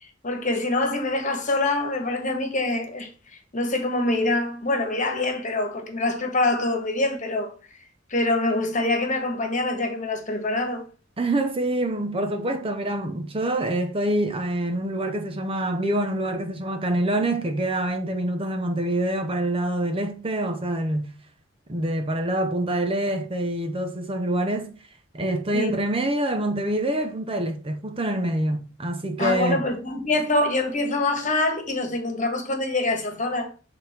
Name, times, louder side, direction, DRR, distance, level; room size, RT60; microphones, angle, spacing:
voice 1, 0.0-7.5 8.1-10.8 25.5-25.7 29.2-33.5, left 2 dB, 40° left, 1.5 m, -25 dB
voice 2, 11.2-21.1 21.7-24.7 25.1-29.6, right 1 dB, 30° right, 0.7 m, -26 dB
6.9 x 3.9 x 4.3 m
head